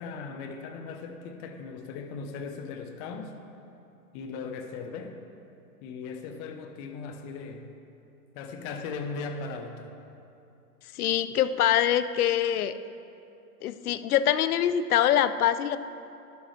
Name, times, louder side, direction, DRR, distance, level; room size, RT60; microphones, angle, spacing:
voice 1, 0.0-3.3 4.1-5.2 5.8-7.7 8.3-9.9, left 4 dB, 35° left, 6 dB, 0.9 m, -38 dB
voice 2, 10.9-12.7 13.6-15.8, left 10 dB, 70° left, 13 dB, 0.7 m, -24 dB
12.0 x 11.0 x 3.3 m, 2.7 s
hypercardioid pair, 135°, 46 cm